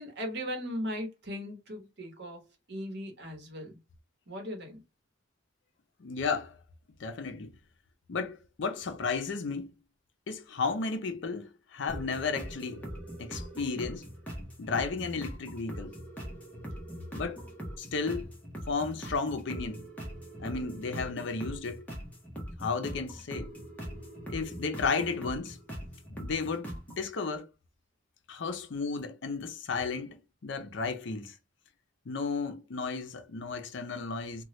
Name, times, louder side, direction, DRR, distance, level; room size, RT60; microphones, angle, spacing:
voice 1, 0.0-3.8 4.3-4.8, equal, 55° right, 1.0 m, -38 dB
voice 2, 6.0-6.6 7.0-7.5 8.1-9.7 10.3-12.8 13.2-14.1 14.6-15.9 17.1-17.4 17.8-18.3 18.7-19.9 20.4-21.9 22.6-23.5 24.3-25.6 26.1-27.5 28.3-31.4 32.1-34.4, left 4 dB, 65° left, 0.5 m, -33 dB
sound 1, 11.9-27.1, equal, 10° left, 0.7 m, -42 dB
2.9 x 2.2 x 3.0 m
head